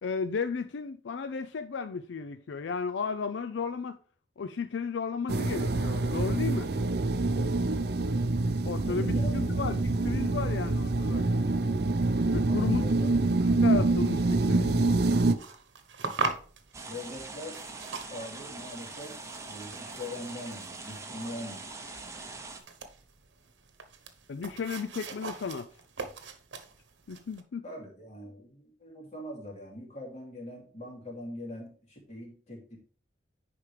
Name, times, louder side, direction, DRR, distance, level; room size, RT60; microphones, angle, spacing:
voice 1, 0.0-4.0 4.4-6.7 8.6-11.3 12.3-12.8 13.4-14.9 24.3-25.7 27.1-27.6, left 5 dB, 80° left, 0.4 m, -34 dB
sound 1, 5.3-15.3, right 2 dB, 60° right, 0.6 m, -26 dB
voice 2, 8.8-9.6 12.5-13.1 16.9-17.6 18.1-19.1 19.5-21.8 27.6-32.8, left 1 dB, 40° left, 2.7 m, -42 dB
sound 2, 14.8-27.4, right 4 dB, 90° right, 1.0 m, -41 dB
sound 3, 16.7-22.6, right 3 dB, 15° right, 0.8 m, -43 dB
9.8 x 5.1 x 3.3 m
head